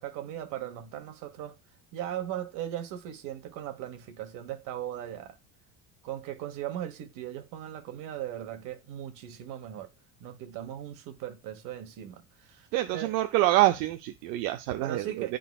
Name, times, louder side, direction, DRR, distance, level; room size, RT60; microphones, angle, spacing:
voice 1, 0.0-1.5 1.9-5.4 6.0-9.9 10.2-12.7 12.9-13.1 14.8-15.4, right 11 dB, 65° right, 1.3 m, -38 dB
voice 2, 12.7-15.4, right 16 dB, 85° right, 0.6 m, -26 dB
10.5 x 3.9 x 2.4 m
cardioid pair, 145°, 34 cm